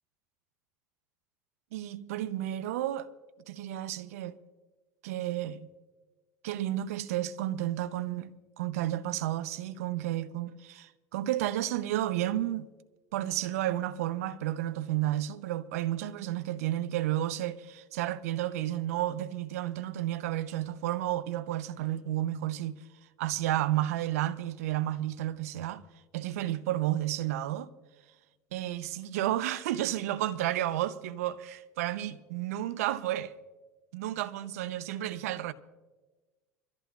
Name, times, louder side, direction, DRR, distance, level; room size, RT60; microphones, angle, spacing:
voice 1, 1.7-3.1 3.5-4.4 5.0-5.7 6.4-12.7 13.1-22.8 23.2-25.8 26.1-27.7 28.5-33.3 33.9-35.5, right 13 dB, 75° right, 0.7 m, -32 dB
25.5 x 14.0 x 2.4 m
hypercardioid pair, 80°, 8 cm